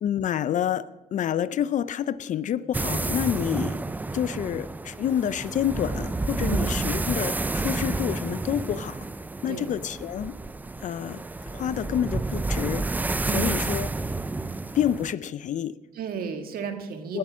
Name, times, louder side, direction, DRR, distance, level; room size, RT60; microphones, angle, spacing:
voice 1, 0.0-3.8 4.1-9.0 9.4-10.4 10.8-12.8 13.3-13.9 14.7-15.8 17.1-17.2, left 10 dB, 45° left, 16 dB, 0.5 m, -28 dB
sound 1, 2.7-15.1, right 3 dB, 10° right, 0.4 m, -30 dB
voice 2, 6.4-7.0 9.5-9.7 13.2-13.6 15.9-17.2, right 6 dB, 60° right, 6 dB, 1.6 m, -32 dB
18.0 x 7.6 x 6.1 m, 1.1 s
cardioid pair, 110°, 17 cm